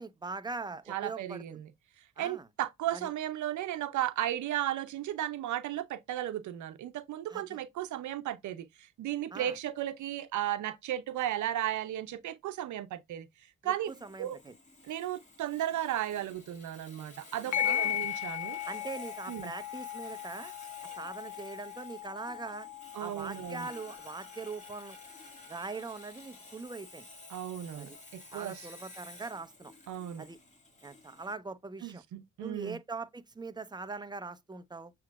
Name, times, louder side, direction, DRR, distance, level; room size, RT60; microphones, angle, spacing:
voice 1, 0.0-1.6 2.2-2.5 2.9-3.1 7.3-7.6 9.3-9.6 13.6-14.5 17.5-18.0 18.7-20.5 21.0-22.7 23.0-25.0 25.5-27.1 27.8-28.0 28.3-29.7 30.2-30.4 30.8-32.0 32.4-34.9, right 4 dB, 15° right, 0.8 m, -42 dB
voice 2, 0.9-1.6 2.2-13.3 13.6-13.9 14.2-14.4 14.8-18.6 19.3-19.5 22.9-23.7 27.3-28.7 29.9-30.3 31.8-32.8, right 12 dB, 75° right, 0.7 m, -35 dB
Sawing, 13.8-31.3, left 2 dB, 25° left, 2.4 m, -53 dB
sound 1, 17.5-26.5, left 11 dB, 70° left, 0.9 m, -38 dB
7.1 x 3.0 x 2.3 m
cardioid pair, 90°, 30 cm